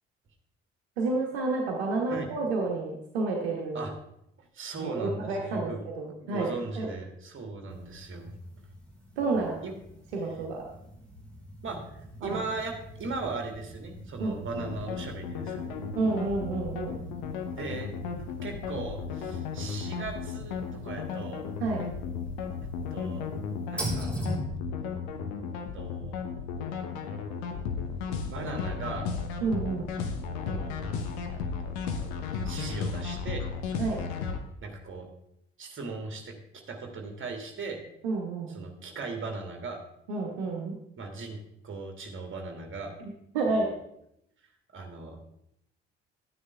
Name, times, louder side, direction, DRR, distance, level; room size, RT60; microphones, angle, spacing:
voice 1, 1.0-3.9 4.8-6.9 9.2-9.6 10.1-10.7 12.2-12.4 14.2-14.4 16.0-17.0 21.6-21.8 29.4-29.9 33.8-34.0 38.0-38.6 40.1-40.8 43.0-43.7, right 3 dB, 70° right, 0 dB, 1.2 m, -30 dB
voice 2, 4.5-8.3 9.6-9.8 10.2-10.3 11.6-15.8 17.6-17.9 18.4-21.5 22.9-23.2 23.7-24.1 25.7-26.2 28.3-29.1 30.4-30.8 32.4-33.5 34.6-35.1 35.6-36.3 36.7-37.8 38.5-39.8 41.0-43.0 43.4-43.8 44.7-45.4, right 3 dB, 35° right, 3 dB, 2.1 m, -38 dB
sound 1, 7.7-24.4, right 1 dB, 5° left, 4.0 m, -43 dB
sound 2, 14.5-34.4, left 5 dB, 65° left, 1.1 m, -35 dB
12.0 x 9.5 x 3.4 m, 0.78 s
figure-of-eight pair, 45°, 33 cm